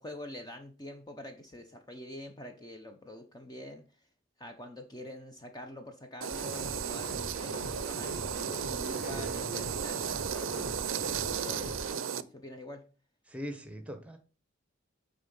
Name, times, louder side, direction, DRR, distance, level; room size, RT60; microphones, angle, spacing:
voice 1, 0.0-3.8 4.4-12.8, left 1 dB, 20° left, 0.8 m, -46 dB
sound 1, 6.2-12.2, right 7 dB, 80° right, 0.5 m, -35 dB
sound 2, 6.3-12.0, left 1 dB, 50° left, 2.3 m, -43 dB
voice 2, 8.9-9.7 13.3-14.2, equal, 5° right, 1.1 m, -42 dB
9.3 x 3.7 x 5.5 m
head